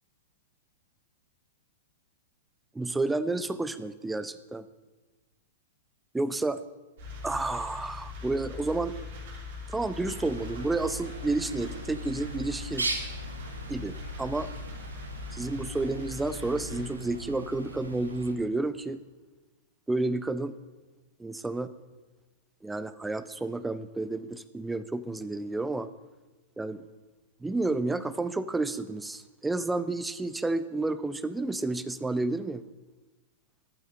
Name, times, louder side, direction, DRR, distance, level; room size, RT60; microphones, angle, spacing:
voice 1, 2.7-4.7 6.1-6.6 7.2-8.9 9.7-12.9 13.7-14.5 15.3-19.0 19.9-20.5 21.2-21.7 22.6-25.9 26.6-26.8 27.4-32.6, right 2 dB, 5° right, 14 dB, 0.4 m, -30 dB
sound 1, 7.0-16.9, left 4 dB, 50° right, 3.2 m, -41 dB
Bird, 10.0-18.3, right 2 dB, 80° right, 1.1 m, -39 dB
11.0 x 9.0 x 4.2 m, 1.2 s
figure-of-eight pair, 105°, 0 cm